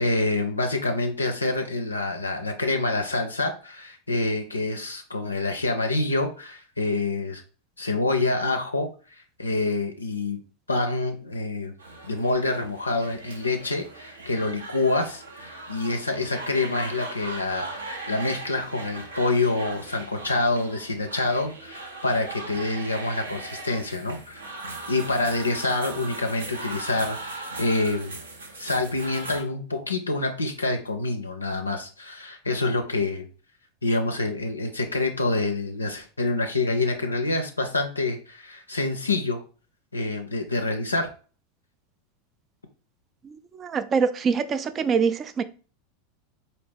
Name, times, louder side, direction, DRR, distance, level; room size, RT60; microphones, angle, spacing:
voice 1, 0.0-7.4 7.8-8.9 9.4-10.4 10.7-11.7 12.0-24.4 24.9-28.1 28.6-33.3 33.8-39.4 39.9-41.1, left 2 dB, 85° left, 0.4 m, -27 dB
sound 1, 11.8-29.4, right 2 dB, 75° right, 0.8 m, -39 dB
voice 2, 43.2-45.4, right 5 dB, 30° right, 0.3 m, -25 dB
4.1 x 2.7 x 3.4 m
figure-of-eight pair, 85°, 0 cm